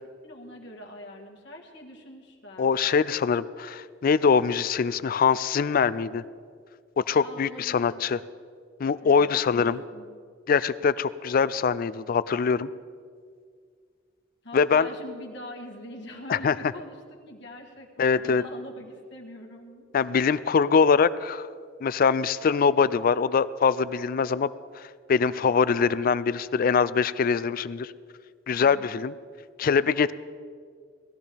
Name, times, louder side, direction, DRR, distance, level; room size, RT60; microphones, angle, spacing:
voice 1, 0.2-2.7 7.2-8.1 9.0-10.1 14.4-17.0 17.3-19.9, left 1 dB, 65° left, 1 dB, 1.7 m, -43 dB
voice 2, 2.6-6.2 7.0-8.2 8.8-9.8 10.5-12.7 14.5-14.9 16.3-16.5 18.0-18.4 19.9-21.5 21.8-24.5 24.8-24.9 25.1-27.9 28.5-29.1 29.6-30.1, left 6 dB, 50° left, 17 dB, 0.3 m, -23 dB
18.5 x 13.5 x 3.4 m, 2.1 s
head